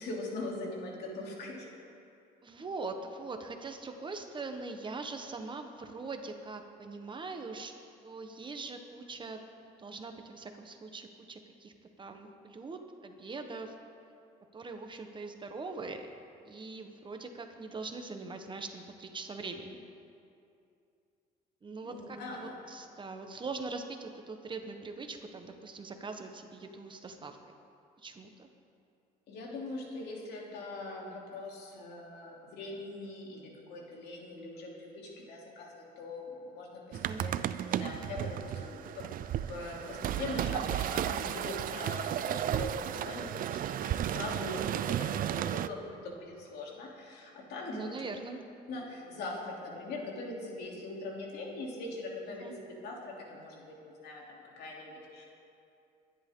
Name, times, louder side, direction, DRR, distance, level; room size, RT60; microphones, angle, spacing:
voice 1, 0.0-1.7 21.8-22.6 29.3-37.3 37.6-39.0 39.5-48.0 48.7-55.2, left 2 dB, 75° left, -2 dB, 3.3 m, -41 dB
voice 2, 2.4-7.7 8.0-11.7 12.0-13.7 14.5-16.1 16.4-19.8 21.6-27.4 28.0-28.5 36.9-37.2 47.7-48.4 52.4-52.5, right 3 dB, 30° right, 5 dB, 1.3 m, -42 dB
sound 1, 36.9-45.7, right 11 dB, 55° right, 0.5 m, -34 dB
23.0 x 11.0 x 3.8 m, 2.5 s
cardioid pair, 110°, 17 cm